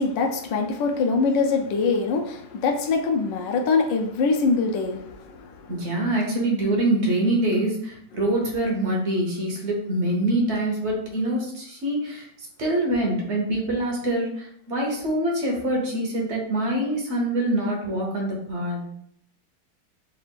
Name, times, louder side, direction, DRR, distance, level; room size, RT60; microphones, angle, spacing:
voice 1, 0.0-5.7, left 4 dB, 70° left, 3 dB, 1.2 m, -23 dB
voice 2, 5.7-12.3 12.6-18.9, right 1 dB, 50° right, -1 dB, 0.9 m, -25 dB
4.0 x 2.5 x 4.5 m, 0.67 s
omnidirectional pair, 2.3 m